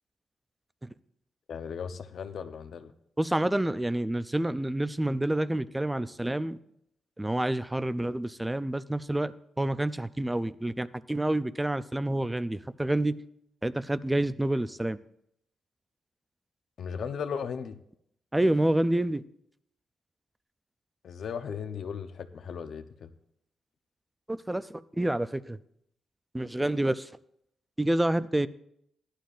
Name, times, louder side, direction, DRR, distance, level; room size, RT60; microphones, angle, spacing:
voice 1, 1.5-2.9 16.8-17.8 21.0-23.1, left 7 dB, 60° left, 9 dB, 0.8 m, -36 dB
voice 2, 3.2-6.6 7.2-13.2 13.6-15.0 18.3-19.2 24.3-25.6 26.3-27.1 27.8-28.5, right 1 dB, 10° right, 15 dB, 0.4 m, -28 dB
17.5 x 11.5 x 2.5 m, 0.74 s
wide cardioid pair, 155°, 0 cm